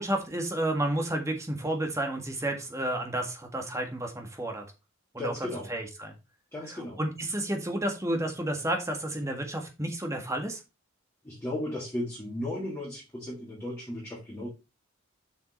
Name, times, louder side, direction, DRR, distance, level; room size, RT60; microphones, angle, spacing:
voice 1, 0.0-4.6 5.1-5.3 5.7-6.1 6.7-10.6, right 1 dB, 15° right, 3 dB, 1.7 m, -31 dB
voice 2, 5.2-5.7 6.5-7.0 11.2-14.5, left 1 dB, 15° left, -8 dB, 3.4 m, -35 dB
7.4 x 6.0 x 4.1 m, 0.27 s
head